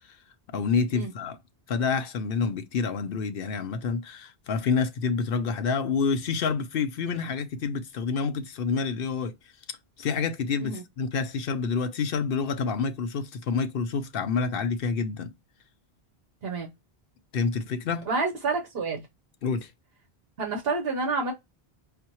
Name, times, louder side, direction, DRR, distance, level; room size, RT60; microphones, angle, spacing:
voice 1, 0.5-1.4 1.7-9.3 10.0-15.3 17.3-18.0 19.4-19.7, left 5 dB, 65° left, 0.8 m, -28 dB
voice 2, 18.1-19.0 20.4-21.3, right 4 dB, 70° right, 1.1 m, -28 dB
5.8 x 2.0 x 2.9 m
omnidirectional pair, 1.1 m